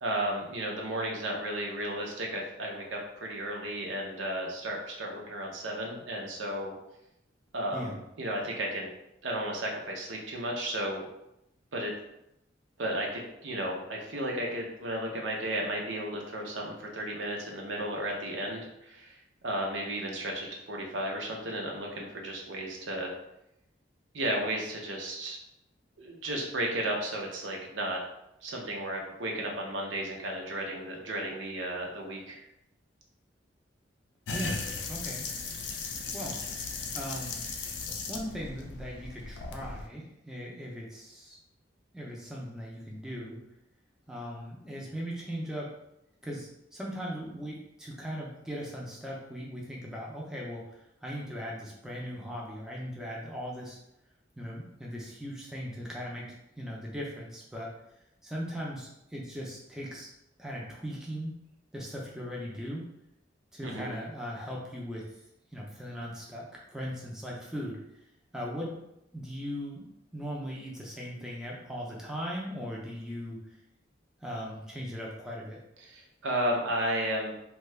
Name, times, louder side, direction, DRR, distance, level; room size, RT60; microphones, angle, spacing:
voice 1, 0.0-6.7 7.5-8.9 9.2-11.1 11.7-11.9 12.8-23.1 24.1-25.4 26.0-28.0 28.4-32.4 63.6-64.0 75.8-77.3, right 1 dB, 85° right, 0 dB, 0.7 m, -34 dB
sound 1, 34.3-39.9, left 4 dB, 70° left, 0.4 m, -37 dB
voice 2, 34.3-35.3 36.1-36.4 36.9-37.4 38.1-41.4 41.9-43.4 44.1-45.7 46.2-53.8 54.4-56.3 56.6-57.7 58.2-60.1 60.4-61.3 61.7-62.8 63.5-65.1 65.5-66.4 66.7-67.8 68.3-68.7 69.1-69.8 70.1-73.4 74.2-75.6, equal, 5° right, -4 dB, 0.4 m, -38 dB
2.7 x 2.3 x 3.2 m, 0.82 s
head